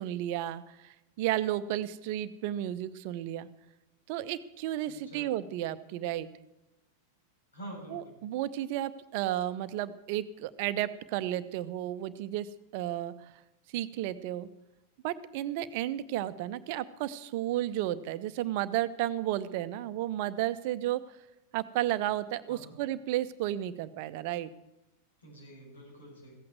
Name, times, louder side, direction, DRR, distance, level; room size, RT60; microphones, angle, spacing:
voice 1, 0.0-3.5 4.1-6.3 7.9-13.1 13.7-14.5 15.0-21.0 21.5-24.5, right 13 dB, 45° right, 14 dB, 0.6 m, -33 dB
voice 2, 4.9-5.3 7.5-8.1 22.5-22.7 25.2-26.4, right 1 dB, 75° left, -2 dB, 6.7 m, -47 dB
15.5 x 8.6 x 7.9 m, 0.91 s
figure-of-eight pair, 90°, 0 cm